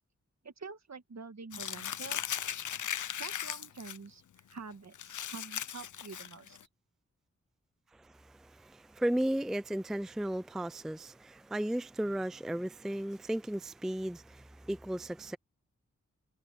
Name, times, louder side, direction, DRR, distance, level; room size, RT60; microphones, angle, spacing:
voice 1, 0.4-2.2 3.2-4.2 4.5-6.6, right 4 dB, 65° right, 1.7 m, -46 dB
Crumpling crinkling, 1.5-4.0 4.4-4.5 4.9-6.6, left 9 dB, 80° left, 0.6 m, -38 dB
voice 2, 7.9-15.4, right 1 dB, ahead, 0.4 m, -35 dB
wide cardioid pair, 60°, 30 cm